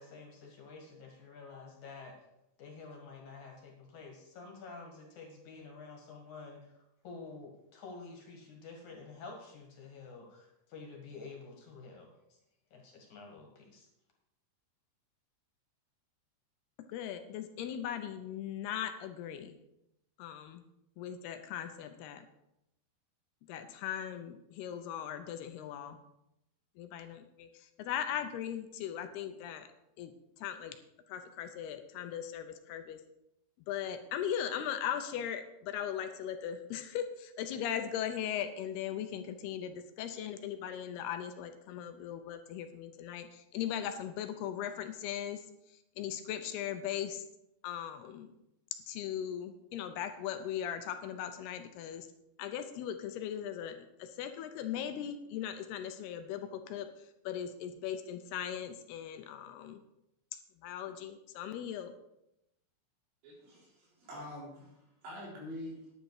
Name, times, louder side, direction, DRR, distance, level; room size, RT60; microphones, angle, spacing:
voice 1, 0.0-2.2 2.6-12.4 12.7-13.9, left 4 dB, 55° left, 2 dB, 2.7 m, -49 dB
voice 2, 16.9-19.6 20.2-20.6 21.0-22.3 23.5-26.0 26.8-29.7 30.0-30.1 30.4-30.8 31.1-33.0 33.7-45.4 46.0-47.2 47.6-48.3 48.9-52.1 52.4-56.9 57.3-59.8 60.6-61.9, left 9 dB, 80° left, 8 dB, 2.6 m, -38 dB
voice 3, 63.2-65.9, left 1 dB, 85° right, -4 dB, 6.2 m, -46 dB
10.5 x 10.0 x 4.8 m, 0.84 s
omnidirectional pair, 4.9 m